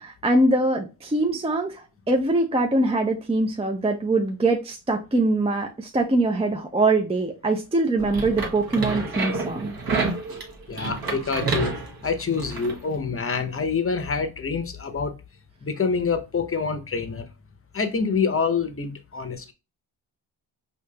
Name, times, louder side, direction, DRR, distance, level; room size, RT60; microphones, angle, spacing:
voice 1, 0.0-9.7, right 2 dB, 15° right, 0.5 m, -23 dB
sound 1, 8.0-12.8, right 4 dB, 50° right, 1.0 m, -29 dB
voice 2, 10.7-11.8 12.0-15.1 15.6-17.3 17.7-19.5, left 5 dB, 30° left, 0.7 m, -26 dB
5.0 x 2.8 x 2.2 m
cardioid pair, 55°, 48 cm